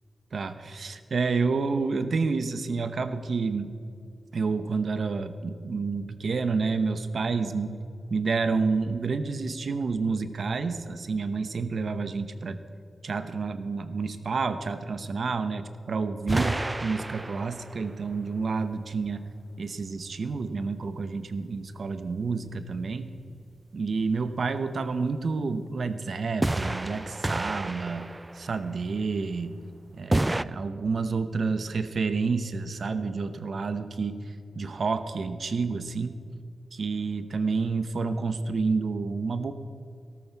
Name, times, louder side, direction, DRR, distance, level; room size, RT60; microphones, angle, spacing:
voice 1, 0.3-3.7 4.3-7.8 8.1-12.6 13.0-19.3 19.6-23.1 23.7-28.1 28.3-29.5 29.9-34.2 34.6-36.1 36.7-39.5, right 4 dB, 65° right, 10 dB, 0.9 m, -29 dB
sound 1, 16.3-18.0 26.4-28.7 30.1-30.4, right 2 dB, 20° right, 0.3 m, -29 dB
17.5 x 13.5 x 4.6 m, 2.3 s
wide cardioid pair, 90°, 0 cm